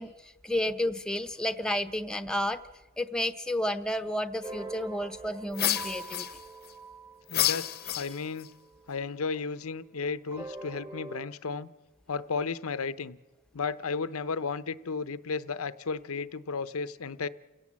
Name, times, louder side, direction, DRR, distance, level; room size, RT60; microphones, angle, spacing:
voice 1, 0.0-2.6 3.0-6.3, left 1 dB, 5° left, 9 dB, 0.8 m, -31 dB
sound 1, 4.4-9.1 10.3-11.3, right 3 dB, 20° right, 1.4 m, -44 dB
sound 2, 5.5-6.7 7.3-8.5, left 13 dB, 45° left, 0.8 m, -30 dB
voice 2, 7.3-8.5 8.9-11.7 12.1-13.2 13.5-17.3, left 4 dB, 80° left, 15 dB, 0.8 m, -34 dB
29.0 x 17.0 x 7.5 m, 1.2 s
head